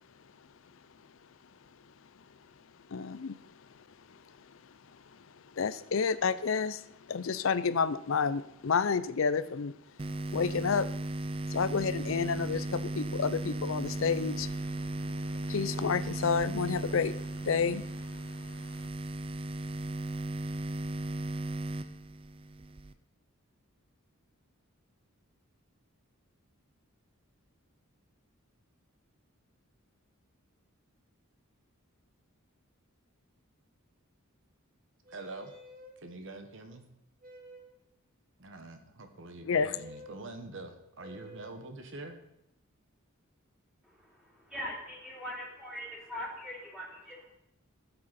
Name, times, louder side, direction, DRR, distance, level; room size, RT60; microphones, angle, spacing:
voice 1, 2.9-3.4 5.5-9.7 10.3-10.9 11.5-14.8 15.3-17.1 17.4-17.9 39.5-39.8, left 5 dB, 60° left, 15 dB, 0.5 m, -30 dB
sound 1, 10.0-22.9, right 1 dB, 25° right, 0.4 m, -36 dB
sound 2, 35.0-36.0 37.2-37.8 39.5-40.1 41.0-41.6, equal, 40° right, 1.9 m, -51 dB
voice 2, 35.1-35.5 36.0-36.9 38.4-42.2, right 2 dB, 60° right, 6 dB, 1.2 m, -45 dB
voice 3, 43.8-47.3, equal, 5° right, -6 dB, 3.4 m, -42 dB
13.5 x 7.9 x 4.2 m, 0.82 s
head